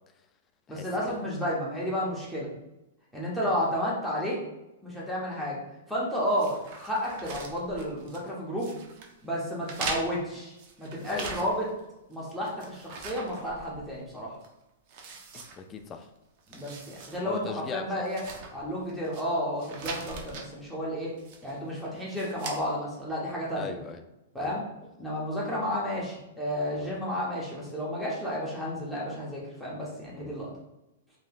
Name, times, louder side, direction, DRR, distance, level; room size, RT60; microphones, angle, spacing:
voice 1, 0.7-2.5 3.1-4.4 4.8-5.6 5.9-8.7 9.2-11.7 12.1-14.3 16.5-18.2 18.5-21.1 21.4-23.7 24.3-24.6 25.0-30.5, equal, ahead, -6 dB, 0.9 m, -32 dB
sound 1, 6.4-8.3 8.6-9.1 9.6-11.8 12.1-14.0 14.4-14.5 14.9-16.1 16.4-17.2 17.5-17.6 18.0-19.2 19.6-20.5 21.2-21.6 22.1-22.6, right 4 dB, 40° right, 0.5 m, -41 dB
voice 2, 11.1-11.5 15.3-16.1 17.2-18.0 20.1-20.3 23.6-24.0 24.4-24.5 26.8-26.9 30.2-30.4, left 5 dB, 20° left, 7 dB, 0.3 m, -39 dB
3.1 x 2.8 x 2.3 m, 0.93 s
hypercardioid pair, 145°, 0 cm